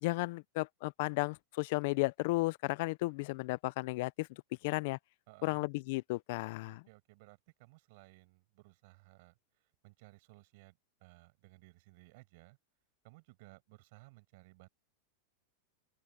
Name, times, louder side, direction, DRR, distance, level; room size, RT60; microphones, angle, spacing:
voice 1, 0.0-5.0 5.4-6.8, left 22 dB, 50° left, 0.4 m, -34 dB
voice 2, 5.3-5.7 6.6-12.6 13.0-14.7, right 24 dB, 45° right, 6.2 m, -59 dB
open air
supercardioid pair, 170°, 0 cm